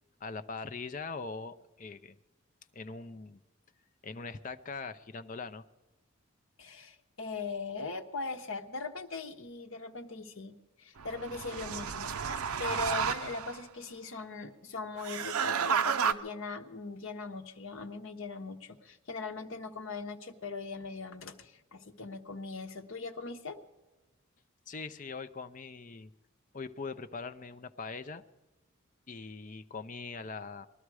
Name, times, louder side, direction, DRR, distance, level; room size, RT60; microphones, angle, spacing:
voice 1, 0.2-2.2 2.7-3.4 4.0-5.6 24.7-26.1 26.5-28.2 29.1-30.7, left 4 dB, 35° left, 10 dB, 0.6 m, -41 dB
voice 2, 6.6-23.6, left 4 dB, 65° left, 5 dB, 1.1 m, -40 dB
sound 1, 11.0-13.6 15.0-16.1, right 7 dB, 85° right, 0.6 m, -32 dB
20.5 x 12.5 x 4.8 m, 1.1 s
head